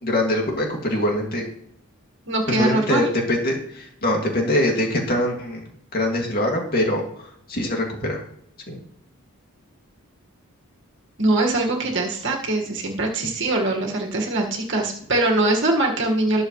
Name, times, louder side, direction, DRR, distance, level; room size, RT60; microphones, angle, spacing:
voice 1, 0.0-1.5 2.5-5.6 5.9-8.2 8.7-8.8, left 1 dB, 45° left, 0 dB, 2.4 m, -23 dB
voice 2, 2.3-3.1 11.2-16.4, right 2 dB, 55° right, 0 dB, 1.8 m, -22 dB
20.0 x 6.7 x 3.2 m, 0.70 s
head